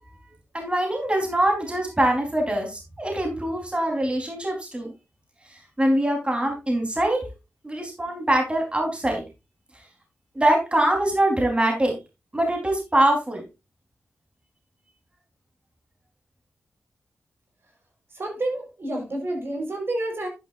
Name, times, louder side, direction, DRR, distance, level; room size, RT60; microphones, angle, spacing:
voice 1, 0.5-4.9 5.5-7.2 7.6-9.2 10.3-11.9 12.3-13.4, right 1 dB, 25° right, 1 dB, 4.0 m, -23 dB
voice 2, 18.1-20.3, right 1 dB, 55° right, 2 dB, 4.6 m, -29 dB
11.0 x 9.4 x 2.6 m, 0.26 s
cardioid pair, 50°, 5 cm